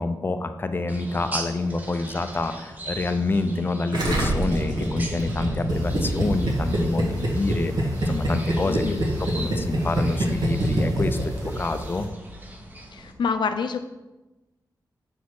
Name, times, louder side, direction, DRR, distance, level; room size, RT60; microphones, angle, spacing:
voice 1, 0.0-8.9 9.2-12.1, left 3 dB, 30° left, 9 dB, 0.4 m, -27 dB
sound 1, 0.9-13.1, right 1 dB, 20° right, 0.9 m, -40 dB
Gurgling, 3.9-11.5 11.8-11.9, right 1 dB, 70° right, 1.6 m, -24 dB
sound 2, 5.7-12.1, left 1 dB, 55° right, 1.0 m, -39 dB
voice 2, 8.7-9.0 12.9-13.8, left 5 dB, 90° left, 8 dB, 0.5 m, -27 dB
6.9 x 4.1 x 4.7 m, 1.1 s
wide cardioid pair, 145°, 8 cm